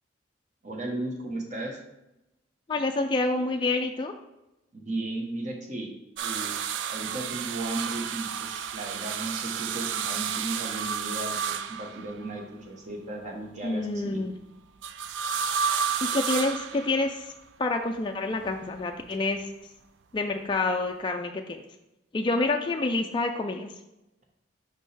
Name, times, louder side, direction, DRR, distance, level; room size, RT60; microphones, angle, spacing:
voice 1, 0.6-1.8 4.7-5.9 6.2-6.5 6.9-14.2, right 2 dB, 40° right, 2 dB, 1.0 m, -35 dB
voice 2, 2.7-4.1 13.6-14.3 16.0-17.3 17.6-19.4 20.1-21.6 22.1-23.7, left 2 dB, 25° left, 3 dB, 0.3 m, -27 dB
sound 1, 6.2-12.4 14.8-17.3 18.4-19.1 20.6-20.7, right 7 dB, 70° right, 0.3 m, -31 dB
5.3 x 5.3 x 3.3 m, 0.92 s
head